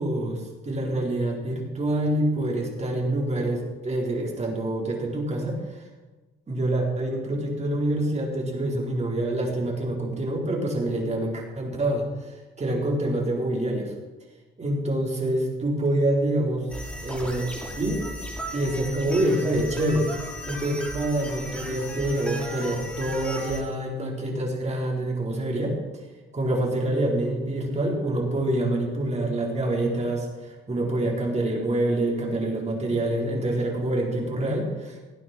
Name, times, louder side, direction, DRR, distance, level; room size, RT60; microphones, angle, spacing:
voice 1, 0.0-5.8 6.5-13.9 14.6-16.7 17.0-17.5 17.8-18.0 18.5-20.1 20.4-25.8 26.3-35.0, right 1 dB, 35° right, -1 dB, 4.5 m, -26 dB
sound 1, 16.7-23.6, equal, 5° left, 4.8 m, -36 dB
17.5 x 9.5 x 6.1 m, 1.2 s
cardioid pair, 90°, 20 cm